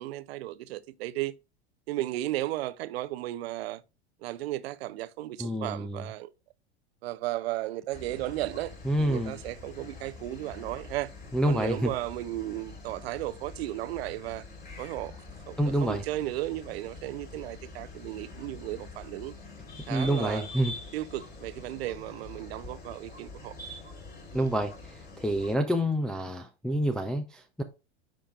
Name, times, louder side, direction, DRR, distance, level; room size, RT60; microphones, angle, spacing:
voice 1, 0.0-1.3 1.9-3.8 4.2-6.3 7.0-8.7 9.0-11.1 11.5-14.4 14.8-15.1 15.5-19.3 19.9-20.5 20.9-23.6 24.3-24.5, right 15 dB, 70° right, 0.6 m, -35 dB
voice 2, 5.4-6.0 8.8-9.4 11.3-11.9 15.6-16.0 19.9-20.7 24.3-27.6, equal, ahead, 0.5 m, -28 dB
sound 1, 7.9-25.5, left 3 dB, 30° left, 2.6 m, -45 dB
10.0 x 4.9 x 2.4 m
hypercardioid pair, 95°, 32 cm